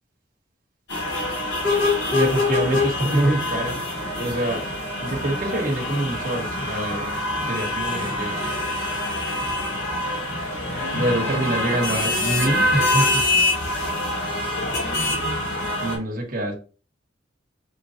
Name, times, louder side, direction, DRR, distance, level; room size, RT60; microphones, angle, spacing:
sound 1, 0.9-16.0, left 2 dB, 65° left, 1.8 m, -25 dB
voice 1, 2.1-3.8 4.2-4.6 5.0-7.2 7.5-8.4 10.9-13.2 15.8-16.5, right 1 dB, 45° right, 0 dB, 1.3 m, -25 dB
4.4 x 3.7 x 2.9 m, 0.36 s
head